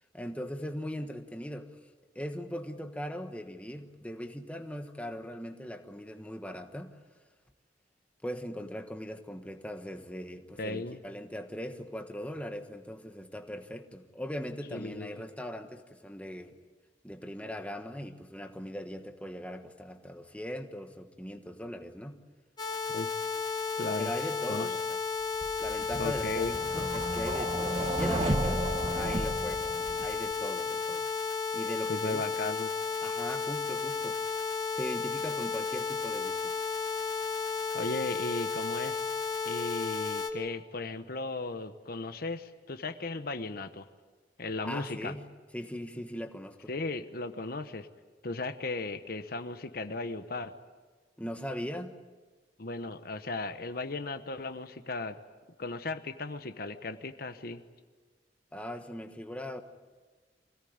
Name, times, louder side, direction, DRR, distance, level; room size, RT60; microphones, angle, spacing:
voice 1, 0.1-1.7 2.1-7.0 8.2-16.5 17.0-22.2 24.0-25.0 25.6-28.7 29.0-31.1 31.5-32.2 33.0-34.2 34.7-36.6 44.6-45.3 45.5-46.7 51.2-52.0 58.5-59.6, equal, 10° left, 6 dB, 1.3 m, -40 dB
voice 2, 10.6-11.0 14.7-15.2 22.9-23.1 23.8-24.1 24.5-24.7 26.0-26.5 31.9-32.7 37.7-39.0 39.4-43.9 44.4-45.1 46.7-47.9 48.2-50.5 52.6-55.2 55.6-57.6, left 3 dB, 60° left, 9 dB, 1.1 m, -36 dB
sound 1, 22.6-40.3, left 5 dB, 25° left, 2.7 m, -33 dB
sound 2, 25.4-30.3, right 1 dB, 35° right, 1.4 m, -33 dB
25.0 x 17.5 x 9.6 m, 1.4 s
head